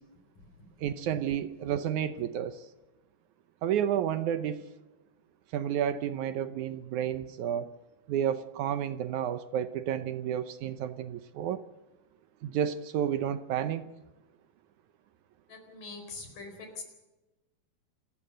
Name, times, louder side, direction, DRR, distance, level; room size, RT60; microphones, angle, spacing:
voice 1, 0.8-2.6 3.6-4.6 5.5-7.7 8.1-11.6 12.4-13.9, right 9 dB, 70° right, 12 dB, 1.9 m, -31 dB
voice 2, 15.5-16.8, left 3 dB, 60° left, 5 dB, 6.1 m, -43 dB
27.5 x 14.5 x 7.9 m, 1.1 s
omnidirectional pair, 4.3 m